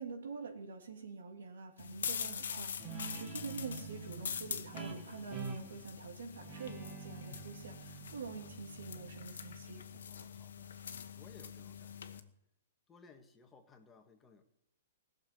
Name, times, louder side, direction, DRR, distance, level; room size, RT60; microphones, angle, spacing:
voice 1, 0.0-9.8, right 4 dB, 85° right, 4 dB, 2.9 m, -46 dB
sound 1, 1.8-12.2, left 7 dB, 80° left, 1.3 m, -44 dB
Guitar, 2.8-10.0, right 4 dB, 25° right, 2.2 m, -47 dB
voice 2, 10.1-12.3 12.9-14.4, left 4 dB, 15° left, 4 dB, 1.7 m, -61 dB
17.0 x 6.7 x 9.3 m, 0.79 s
hypercardioid pair, 145°, 0 cm